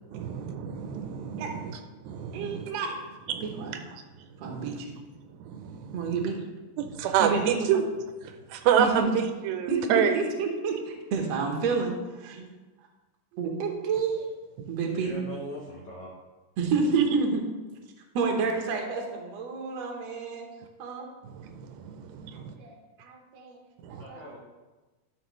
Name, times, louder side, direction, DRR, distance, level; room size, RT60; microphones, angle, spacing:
voice 1, 0.0-2.8 3.3-4.9 5.2-6.3 6.8-7.9 8.2-10.2 14.6-14.7 21.2-22.5 23.8-24.0, right 8 dB, 85° right, 6 dB, 2.4 m, -29 dB
voice 2, 2.3-2.9 3.4-3.8 4.4-4.9 5.9-6.4 7.2-7.6 8.8-9.1 9.7-12.5 13.4-14.2 14.7-15.2 16.6-17.4 18.1-20.5 20.8-21.1 22.3-23.6 23.9-24.2, right 5 dB, 65° right, 2 dB, 1.8 m, -29 dB
voice 3, 14.8-16.2 24.0-24.4, equal, 60° left, -4 dB, 1.7 m, -41 dB
12.0 x 6.1 x 3.2 m, 1.2 s
omnidirectional pair, 4.2 m